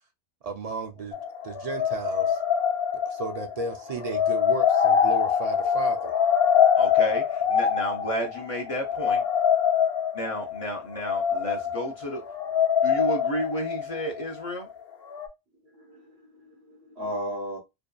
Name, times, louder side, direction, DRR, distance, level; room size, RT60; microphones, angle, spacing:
voice 1, 0.4-1.2 1.4-2.4 3.1-6.2, right 4 dB, 50° right, 0.5 m, -34 dB
sound 1, 1.1-14.7 15.1-15.3, left 8 dB, 70° left, 0.8 m, -24 dB
voice 2, 6.8-9.2 10.1-12.2 12.8-14.7, equal, 45° left, 0.5 m, -32 dB
voice 3, 15.6-17.6, equal, 85° right, 1.2 m, -36 dB
2.7 x 2.3 x 2.2 m
omnidirectional pair, 1.1 m